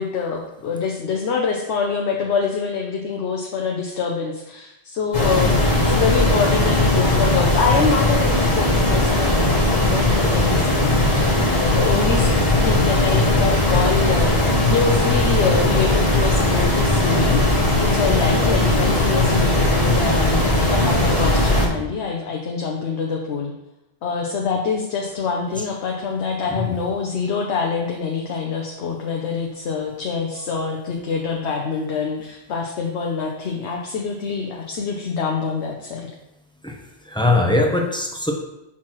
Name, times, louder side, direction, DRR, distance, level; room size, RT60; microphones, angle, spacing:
voice 1, 0.0-5.6 5.8-14.3 14.7-23.5 24.0-36.1, left 5 dB, 70° left, 0 dB, 0.9 m, -25 dB
sound 1, 5.1-21.7, left 1 dB, 35° left, 1.2 m, -18 dB
voice 2, 37.0-38.3, left 2 dB, 5° left, 1 dB, 0.6 m, -21 dB
6.0 x 5.8 x 3.0 m, 0.91 s
omnidirectional pair, 1.2 m